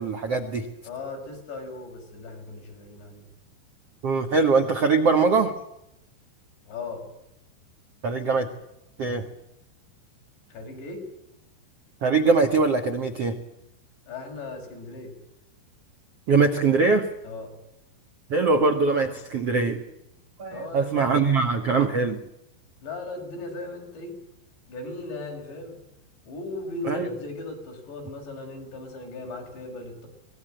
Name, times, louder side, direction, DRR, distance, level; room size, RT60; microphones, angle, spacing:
voice 1, 0.0-0.7 4.0-5.5 8.0-8.5 9.0-9.3 12.0-13.4 16.3-17.1 18.3-19.8 20.4-22.2 26.8-27.1, right 4 dB, 90° right, 6 dB, 1.3 m, -22 dB
voice 2, 0.8-3.2 6.7-7.0 10.5-11.0 14.1-15.1 17.2-17.5 20.5-21.2 22.8-24.1 24.7-25.8 26.3-30.1, left 3 dB, 65° left, 2 dB, 8.0 m, -37 dB
24.5 x 20.0 x 9.0 m, 0.84 s
omnidirectional pair, 5.5 m